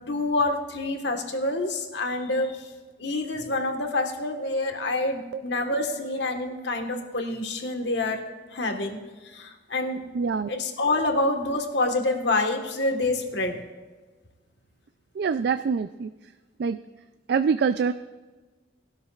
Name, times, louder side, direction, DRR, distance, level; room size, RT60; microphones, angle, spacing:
voice 1, 0.1-2.6 3.0-8.2 8.5-10.0 10.5-13.6, left 2 dB, 70° left, 4 dB, 1.5 m, -27 dB
voice 2, 10.1-10.6 15.2-16.1 16.6-16.8 17.3-17.9, right 5 dB, 60° right, 11 dB, 0.3 m, -24 dB
19.0 x 12.5 x 2.4 m, 1.3 s
head